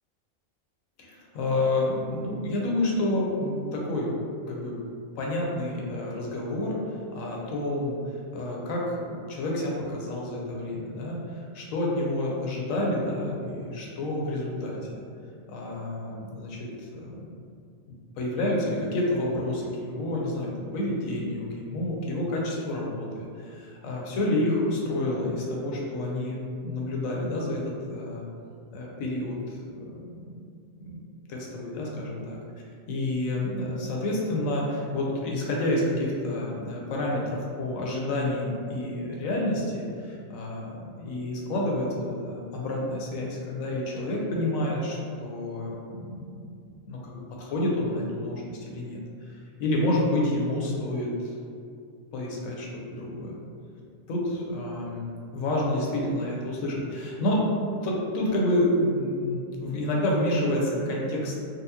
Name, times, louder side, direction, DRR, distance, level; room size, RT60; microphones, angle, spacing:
voice 1, 1.0-4.1 4.5-4.8 5.1-8.0 8.3-15.0 15.5-17.3 18.2-28.3 28.7-30.4 30.8-31.0 31.3-32.4 32.9-46.3 46.8-51.3 52.1-53.3 54.1-57.5 57.8-61.3, left 1 dB, 80° left, -3 dB, 1.1 m, -29 dB
4.1 x 2.1 x 2.7 m, 2.3 s
omnidirectional pair, 1.4 m